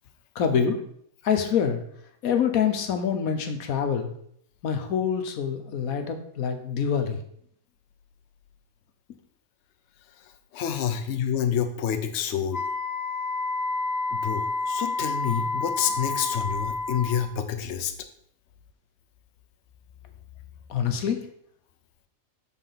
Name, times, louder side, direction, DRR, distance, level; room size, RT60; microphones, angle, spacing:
voice 1, 0.3-0.8 1.2-1.8 2.2-4.1 4.6-7.2 20.7-21.2, left 7 dB, 80° left, 6 dB, 1.4 m, -25 dB
voice 2, 10.5-12.6 14.1-17.9, left 8 dB, 60° left, 7 dB, 0.9 m, -28 dB
Wind instrument woodwind instrument, 12.5-17.3, left 3 dB, 35° left, 1.0 m, -29 dB
7.3 x 4.1 x 5.7 m, 0.67 s
omnidirectional pair, 1.5 m